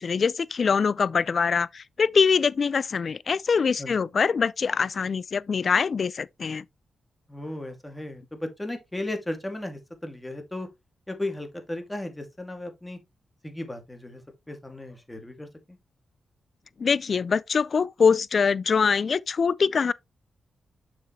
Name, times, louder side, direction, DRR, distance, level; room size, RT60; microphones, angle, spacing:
voice 1, 0.0-6.6 16.8-19.9, left 5 dB, 60° left, 0.4 m, -23 dB
voice 2, 7.3-10.7 11.1-13.0 13.4-14.2 14.5-15.8, left 1 dB, 15° left, 2.3 m, -35 dB
6.9 x 5.9 x 3.1 m
cardioid pair, 55°, 0 cm